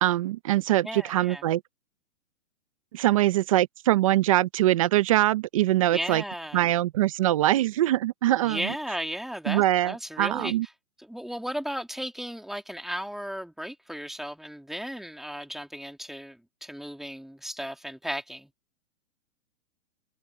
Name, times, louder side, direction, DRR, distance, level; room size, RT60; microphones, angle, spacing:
voice 1, 0.0-1.6 2.9-6.2 6.5-8.7 9.5-10.7, right 14 dB, 25° right, 0.5 m, -23 dB
voice 2, 0.8-1.4 5.9-6.7 8.4-10.5 11.1-18.5, equal, ahead, 2.2 m, -35 dB
hypercardioid pair, 150°, 41 cm